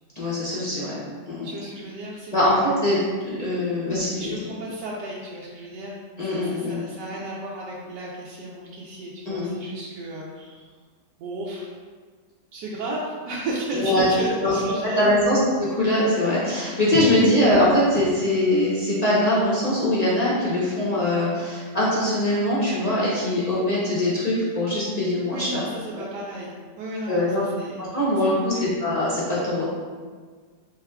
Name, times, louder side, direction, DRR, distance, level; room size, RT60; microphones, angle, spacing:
voice 1, 0.2-1.0 1.3-1.5 2.3-3.0 3.3-4.1 6.2-6.8 9.3-9.5 13.7-14.1 14.4-14.5 14.8-15.4 15.7-25.6 25.9-26.0 27.1-27.4 27.8-29.6, left 1 dB, 40° left, -8 dB, 0.6 m, -22 dB
voice 2, 1.4-2.7 4.1-10.7 11.2-11.7 12.5-15.1 17.1-17.2 25.3-28.8, right 1 dB, 85° right, -5 dB, 1.2 m, -34 dB
4.8 x 3.5 x 2.3 m, 1.5 s
omnidirectional pair, 1.8 m